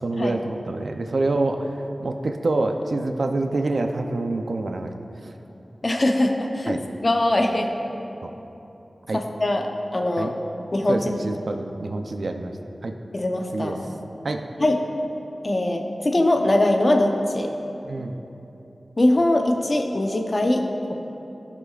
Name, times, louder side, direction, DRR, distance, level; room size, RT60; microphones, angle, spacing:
voice 1, 0.0-1.7 2.0-4.9 5.2-5.3 6.7-6.8 8.2-8.3 9.1-9.2 10.2-10.3 10.9-12.5 12.8-12.9 13.5-13.8 14.2-14.4 17.8-18.2, right 2 dB, 75° right, 5 dB, 0.5 m, -26 dB
voice 2, 5.8-6.8 7.0-7.7 9.1-10.3 10.7-11.1 13.1-13.8 14.6-14.8 15.4-17.5 19.0-21.0, left 1 dB, 45° left, 3 dB, 0.8 m, -22 dB
16.0 x 6.0 x 2.4 m, 3.0 s
wide cardioid pair, 55°, 0 cm